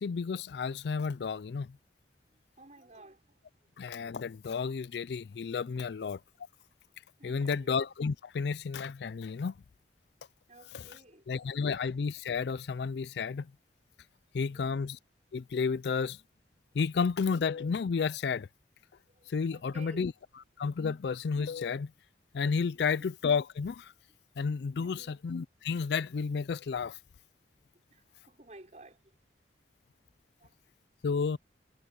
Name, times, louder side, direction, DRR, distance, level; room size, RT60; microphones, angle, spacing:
voice 1, 0.0-1.7 3.8-6.2 7.2-9.5 10.7-10.9 11.3-13.5 14.3-15.0 15.3-16.2 16.7-18.5 19.3-20.1 20.6-21.9 22.3-23.9 24.4-27.0 31.0-31.4, left 5 dB, 70° left, 0.4 m, -31 dB
voice 2, 2.3-3.4 5.8-5.9 7.2-7.7 10.5-11.3 14.4-14.7 19.1-20.1 22.7-22.9 24.8-25.1 27.9-29.0 30.4-30.6, right 1 dB, 40° right, 5.9 m, -54 dB
head